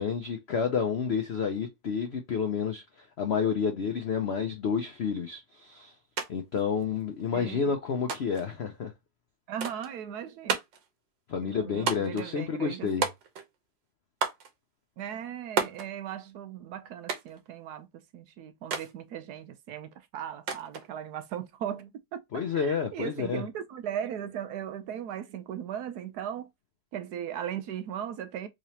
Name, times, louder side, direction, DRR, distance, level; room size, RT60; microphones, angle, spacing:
voice 1, 0.0-5.9 6.3-8.9 11.3-13.1 22.3-23.4, left 6 dB, 80° left, 0.5 m, -30 dB
sound 1, 6.2-6.3 6.6-7.3 8.1-8.5 9.6-9.9 10.5-10.9 11.9-12.3 13.0-13.6 14.2-14.5 15.6-15.9 17.1-17.4 18.7-18.9 20.5-20.9, right 6 dB, 90° right, 1.6 m, -31 dB
voice 2, 9.5-10.6 11.4-12.9 15.0-26.5 26.9-28.5, right 9 dB, 70° right, 1.1 m, -38 dB
3.7 x 3.2 x 2.8 m
omnidirectional pair, 1.9 m